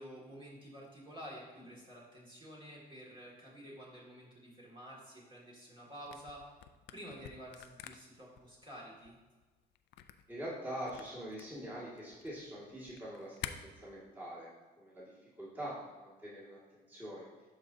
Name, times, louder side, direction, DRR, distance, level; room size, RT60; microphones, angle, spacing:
voice 1, 0.0-6.4 6.9-9.2, equal, 30° right, -5 dB, 2.0 m, -50 dB
Camera, 6.0-13.5, left 12 dB, 85° left, 0.4 m, -50 dB
voice 2, 10.3-14.5 14.8-17.3, right 1 dB, 10° right, -7 dB, 1.9 m, -44 dB
12.0 x 4.1 x 2.7 m, 1.3 s
cardioid pair, 105°, 18 cm